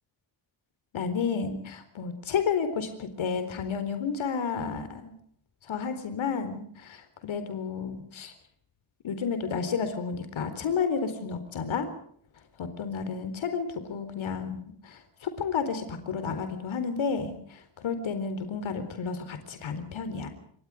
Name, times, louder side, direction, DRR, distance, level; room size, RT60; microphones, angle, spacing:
voice 1, 0.9-5.1 5.6-8.3 9.0-11.9 12.6-20.3, left 6 dB, 85° left, 9 dB, 4.2 m, -31 dB
29.0 x 23.5 x 5.0 m, 0.62 s
wide cardioid pair, 150°, 46 cm